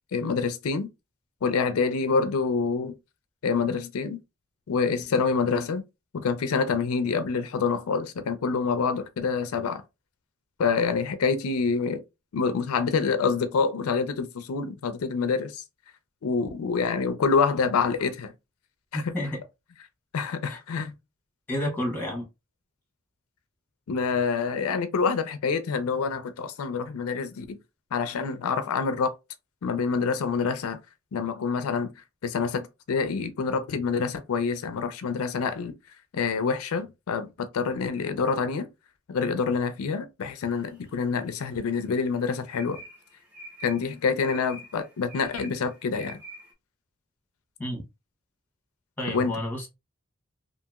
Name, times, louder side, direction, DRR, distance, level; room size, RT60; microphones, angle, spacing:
voice 1, 0.1-0.9 1.4-3.0 3.4-4.2 4.7-5.8 6.1-9.8 10.6-12.0 12.3-15.6 16.2-18.3 18.9-19.0 20.1-20.9 23.9-27.6 27.9-29.1 29.6-30.8 31.1-31.9 32.2-35.7 36.1-38.7 39.1-42.8 43.6-46.2 49.1-49.4, left 5 dB, 85° left, 0.4 m, -26 dB
voice 2, 18.9-19.4 20.5-20.6 21.5-22.3 47.6-47.8 49.0-49.7, left 1 dB, 10° left, 1.0 m, -30 dB
sound 1, 40.5-41.3 41.7-46.5, right 1 dB, 5° right, 0.6 m, -46 dB
2.8 x 2.6 x 2.3 m
head